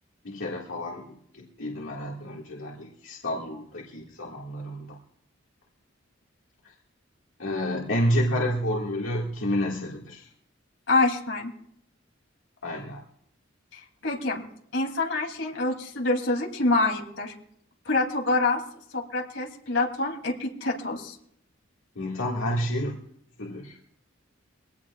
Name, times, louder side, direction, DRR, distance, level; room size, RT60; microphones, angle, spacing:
voice 1, 0.2-5.0 7.4-10.3 12.6-13.0 22.0-23.0 23.4-23.8, equal, 80° left, -3 dB, 2.0 m, -30 dB
voice 2, 10.9-11.5 13.7-14.4 14.7-17.3 17.8-18.6 18.9-21.1, left 2 dB, 65° left, 0 dB, 3.0 m, -26 dB
23.0 x 18.0 x 2.4 m, 0.70 s
head